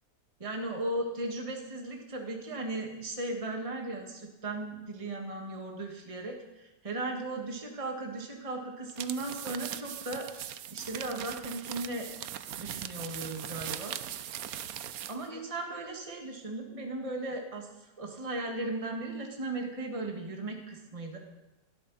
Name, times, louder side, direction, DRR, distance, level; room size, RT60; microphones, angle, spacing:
voice 1, 0.4-10.3 10.7-12.1 12.6-14.0 15.1-17.7 18.0-21.2, right 2 dB, 20° right, 2 dB, 1.7 m, -36 dB
sound 1, 8.9-15.3, right 10 dB, 65° right, 1.0 m, -40 dB
19.5 x 12.5 x 4.2 m, 1.0 s
omnidirectional pair, 1.9 m